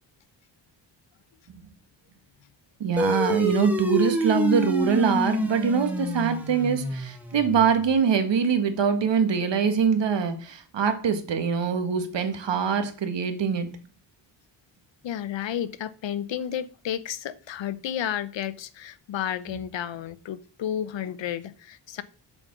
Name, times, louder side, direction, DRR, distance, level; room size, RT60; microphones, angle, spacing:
voice 1, 2.8-13.7, right 6 dB, 75° right, 8 dB, 1.7 m, -23 dB
sound 1, 3.0-7.8, equal, 5° right, 1.7 m, -28 dB
voice 2, 15.0-22.0, left 10 dB, 85° left, 15 dB, 0.8 m, -32 dB
7.2 x 5.4 x 7.3 m, 0.40 s
wide cardioid pair, 115°, 44 cm